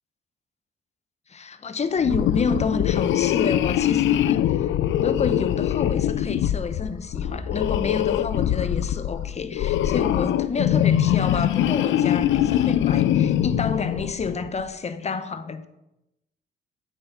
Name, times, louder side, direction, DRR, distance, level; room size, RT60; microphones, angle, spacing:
voice 1, 1.3-4.6 5.0-15.7, left 5 dB, 35° left, 0.8 m, -29 dB
sound 1, 2.0-14.5, left 11 dB, 75° left, 0.4 m, -23 dB
sound 2, 3.2-8.7, left 3 dB, 10° left, 2.2 m, -41 dB
8.5 x 5.7 x 5.6 m
cardioid pair, 90°, 20 cm